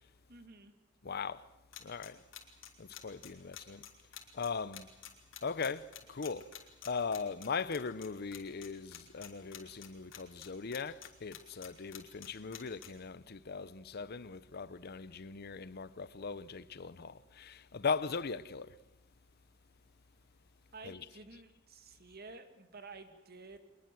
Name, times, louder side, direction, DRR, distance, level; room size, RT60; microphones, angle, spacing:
voice 1, 0.3-0.7 20.7-23.6, right 3 dB, 50° right, 2.1 m, -51 dB
voice 2, 1.0-1.4 1.8-2.2 2.8-3.8 4.3-4.9 5.4-6.5 6.8-18.8 20.8-21.2, left 5 dB, 50° left, 0.7 m, -39 dB
sound 1, 1.7-8.1 8.3-8.7 8.9-10.5 10.7-12.9, left 11 dB, 70° left, 3.7 m, -48 dB
24.0 x 20.5 x 7.7 m
head